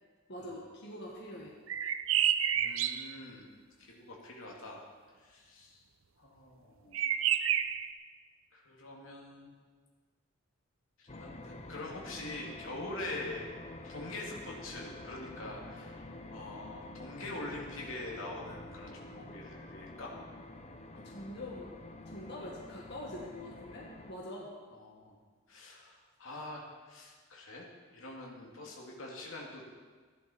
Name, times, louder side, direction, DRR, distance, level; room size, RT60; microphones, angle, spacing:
voice 1, 0.3-1.5 20.9-21.7 22.1-24.5, left 1 dB, 60° left, -4 dB, 1.9 m, -44 dB
sound 1, 1.7-3.1 6.9-7.9, right 10 dB, 75° right, 0.6 m, -29 dB
voice 2, 2.5-3.5 3.8-4.8 5.2-5.8 6.2-7.1 8.5-9.5 11.0-13.5 13.8-20.1 24.7-25.2 25.5-29.6, left 2 dB, 80° left, -2 dB, 2.5 m, -44 dB
sound 2, 11.1-24.1, left 2 dB, 35° left, 0.9 m, -48 dB
15.5 x 11.0 x 4.4 m, 1.5 s
head